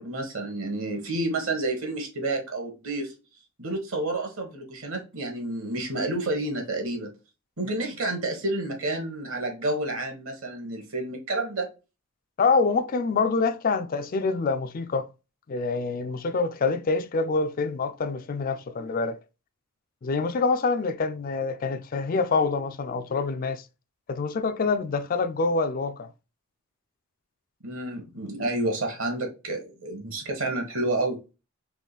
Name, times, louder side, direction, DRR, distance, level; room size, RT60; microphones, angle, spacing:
voice 1, 0.0-3.1 3.6-7.1 7.6-11.7 27.6-31.2, right 2 dB, 70° right, 1.4 m, -30 dB
voice 2, 12.4-15.1 15.5-19.2 20.0-23.6 24.1-26.1, left 4 dB, 40° left, 0.4 m, -26 dB
3.8 x 3.1 x 4.0 m
head